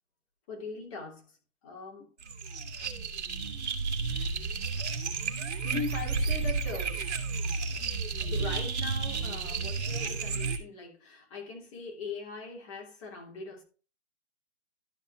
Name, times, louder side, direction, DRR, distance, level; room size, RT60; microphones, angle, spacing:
voice 1, 0.5-1.4 1.6-2.1 4.1-4.3 5.6-7.1 8.2-13.6, left 4 dB, 25° left, 2.9 m, -40 dB
sound 1, 2.2-10.6, right 4 dB, 65° right, 2.2 m, -32 dB
12.5 x 4.5 x 4.4 m
hypercardioid pair, 165°, 36 cm